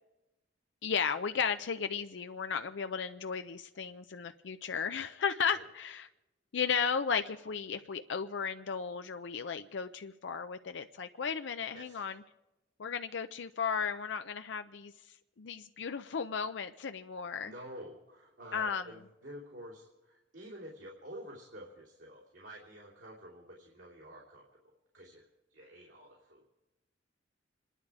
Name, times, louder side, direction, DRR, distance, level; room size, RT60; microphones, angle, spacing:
voice 1, 0.8-6.1 6.5-12.2 12.8-14.9 15.4-17.5 18.5-18.9, left 6 dB, 70° left, 9 dB, 0.5 m, -35 dB
voice 2, 17.4-24.4 24.9-25.2 25.5-26.4, equal, 75° right, -4 dB, 3.0 m, -49 dB
27.0 x 11.0 x 4.8 m, 0.99 s
head